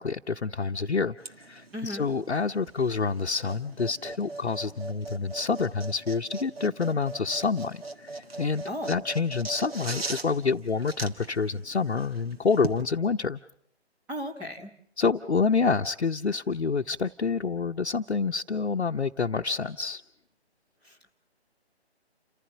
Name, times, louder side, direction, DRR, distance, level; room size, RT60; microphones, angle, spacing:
voice 1, 0.0-13.4 15.0-20.0, left 5 dB, 75° left, 2 dB, 0.8 m, -28 dB
sound 1, 1.2-12.8, right 3 dB, 60° right, 1.8 m, -40 dB
voice 2, 1.7-2.1 8.7-8.9 14.1-14.7 20.8-20.9, left 1 dB, 5° right, -3 dB, 0.8 m, -35 dB
29.0 x 15.0 x 7.4 m, 0.68 s
figure-of-eight pair, 145°, 33 cm